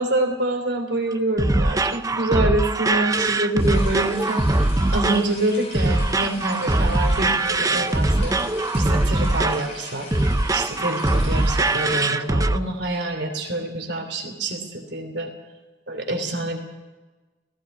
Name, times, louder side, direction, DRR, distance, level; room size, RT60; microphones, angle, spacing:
voice 1, 0.0-8.4 8.8-10.1 10.5-15.3 15.9-16.6, right 2 dB, 65° right, 5 dB, 3.1 m, -26 dB
sound 1, 1.1-12.6, right 2 dB, 20° right, 0.6 m, -22 dB
sound 2, 3.6-12.0, left 2 dB, 35° left, 7.4 m, -39 dB
17.0 x 17.0 x 9.5 m, 1.2 s
head